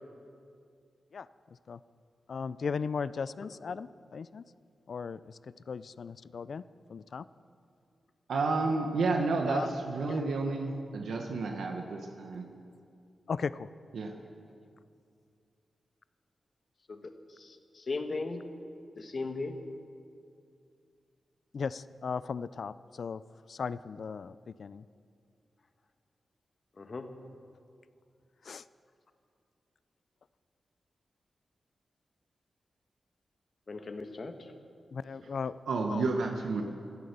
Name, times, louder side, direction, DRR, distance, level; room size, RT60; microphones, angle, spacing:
voice 1, 2.3-4.4 4.9-5.4 5.7-6.6 6.9-7.2 9.5-9.7 10.1-10.6 13.3-13.7 21.5-23.2 23.5-24.8 28.5-28.6 34.9-35.6 35.9-36.1, left 5 dB, 70° left, 16 dB, 0.4 m, -37 dB
voice 2, 8.3-12.5 13.9-14.1 35.7-36.6, right 3 dB, 90° right, 3 dB, 1.2 m, -30 dB
voice 3, 17.4-18.4 19.0-19.6 26.8-27.1 33.7-34.3, left 3 dB, 50° left, 6 dB, 1.4 m, -37 dB
17.0 x 12.5 x 6.8 m, 2.4 s
cardioid pair, 75°, 0 cm